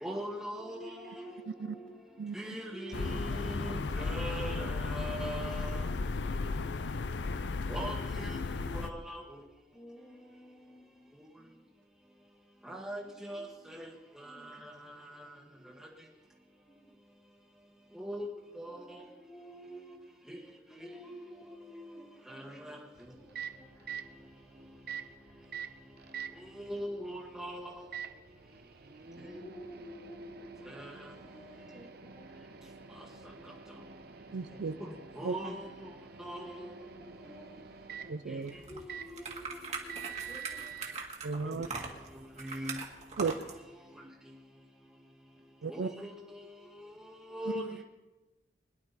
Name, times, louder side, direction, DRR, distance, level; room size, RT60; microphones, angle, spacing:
voice 1, 0.0-1.0 2.3-5.8 7.7-8.3 8.9-9.2 12.7-13.8 18.0-18.3 18.6-18.8 20.3-20.4 22.3-22.8 26.6-27.8 30.8-30.9 34.8-34.9 35.2-35.5 36.2-36.4 41.4-41.5 42.4-42.7 45.7-46.2 47.3-47.6, equal, ahead, 1.4 m, -40 dB
voice 2, 0.6-2.0 2.7-3.9 8.1-9.0 9.7-11.1 11.4-11.5 13.2-14.5 16.7-16.9 18.7-20.1 20.7-22.5 23.1-23.9 29.3-30.9 31.2-32.8 36.2-36.7 36.9-37.8 38.7-40.8, equal, 20° left, 1.6 m, -51 dB
voice 3, 1.5-1.8 2.2-2.4 34.3-34.7 35.2-35.3 38.1-38.6 41.2-41.7 43.2-43.3 45.6-45.9, right 5 dB, 80° right, 0.5 m, -34 dB
sound 1, 2.9-8.9, left 3 dB, 85° left, 0.6 m, -34 dB
Microwave oven, 22.9-41.0, right 7 dB, 60° right, 0.9 m, -47 dB
sound 2, 38.5-43.6, right 4 dB, 40° right, 1.8 m, -41 dB
22.0 x 11.0 x 4.1 m
head